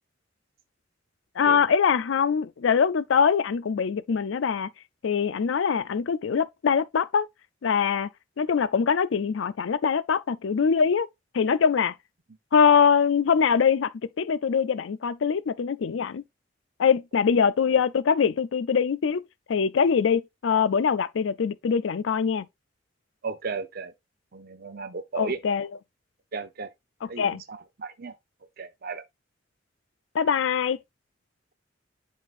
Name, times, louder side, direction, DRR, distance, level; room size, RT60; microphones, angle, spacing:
voice 1, 1.4-4.7 5.0-7.3 7.6-8.1 8.4-11.1 11.3-11.9 12.5-13.9 14.2-16.2 16.8-19.2 19.5-22.5 25.2-25.7 27.2-27.4 30.1-30.8, left 6 dB, 85° left, 0.4 m, -23 dB
voice 2, 23.2-23.9 24.3-25.4 26.3-26.7 27.1-28.1 28.6-29.0, right 4 dB, 55° right, 0.8 m, -35 dB
10.5 x 3.7 x 2.5 m
head